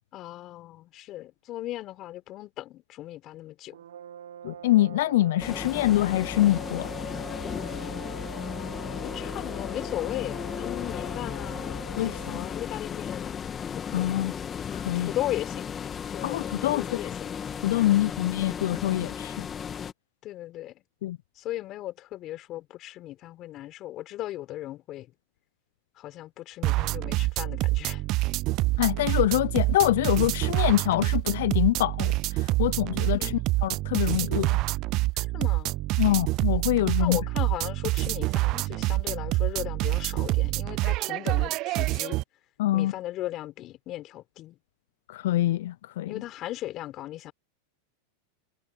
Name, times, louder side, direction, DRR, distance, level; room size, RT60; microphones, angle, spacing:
voice 1, 0.1-3.8 8.9-13.5 13.8-14.2 14.9-15.7 16.0-17.3 17.8-17.9 20.2-20.7 21.4-25.1 26.0-28.0 33.1-33.6 35.2-35.7 37.0-42.2 42.7-44.6 46.1-47.3, left 15 dB, 40° left, 4.2 m, -37 dB
sound 1, 3.7-12.7, right 9 dB, 80° right, 1.3 m, -44 dB
voice 2, 4.4-6.9 12.0-12.2 13.9-14.3 14.7-15.1 16.2-16.8 17.6-19.5 21.0-21.2 28.8-33.3 33.6-34.6 36.0-37.2 42.6-42.9 45.1-46.1, left 15 dB, 70° left, 0.5 m, -25 dB
sound 2, 5.4-19.9, left 7 dB, 25° left, 2.4 m, -35 dB
sound 3, 26.6-42.2, right 20 dB, 45° right, 0.3 m, -27 dB
hypercardioid pair, 110°, 0 cm